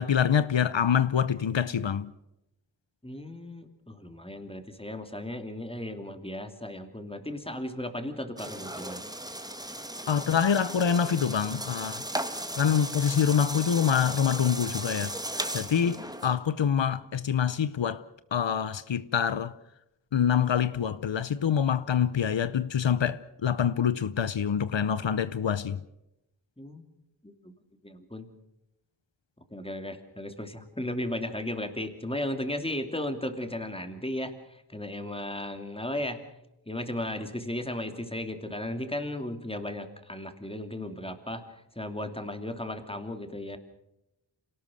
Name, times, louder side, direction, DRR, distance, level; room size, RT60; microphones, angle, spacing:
voice 1, 0.0-2.1 10.1-12.0 12.6-15.2 15.5-18.0 18.3-19.5 20.1-25.8, left 8 dB, 80° left, 0.8 m, -26 dB
voice 2, 3.0-9.0 15.8-16.0 26.6-26.8 27.2-27.5 27.8-28.3 29.5-36.2 36.7-41.4 41.7-43.6, left 1 dB, 15° left, 2.8 m, -35 dB
sound 1, 8.4-16.4, right 1 dB, 10° right, 1.9 m, -36 dB
26.5 x 18.5 x 6.4 m
wide cardioid pair, 45°, 44 cm